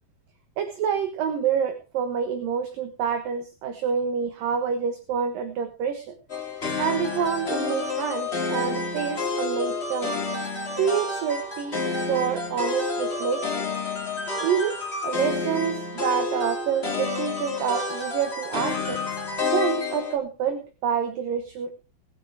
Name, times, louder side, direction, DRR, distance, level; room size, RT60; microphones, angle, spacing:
voice 1, 0.6-6.1 6.8-10.1 10.8-11.8 12.1-13.6 14.4-19.0 19.5-21.7, right 7 dB, 65° right, 6 dB, 2.9 m, -27 dB
sound 1, 6.3-20.2, left 3 dB, 20° left, 2.5 m, -29 dB
21.0 x 7.8 x 4.8 m, 0.32 s
omnidirectional pair, 4.6 m